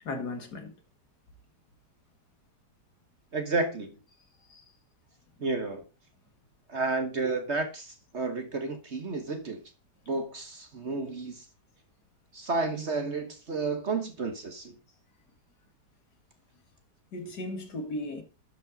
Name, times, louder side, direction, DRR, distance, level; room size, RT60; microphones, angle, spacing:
voice 1, 0.0-0.7 4.5-4.7 17.1-18.2, left 2 dB, 65° left, 2.5 m, -36 dB
voice 2, 3.3-4.0 5.4-5.8 6.7-9.6 10.1-11.4 12.3-14.7, right 3 dB, 40° right, 1.4 m, -31 dB
11.5 x 5.4 x 5.2 m
omnidirectional pair, 1.9 m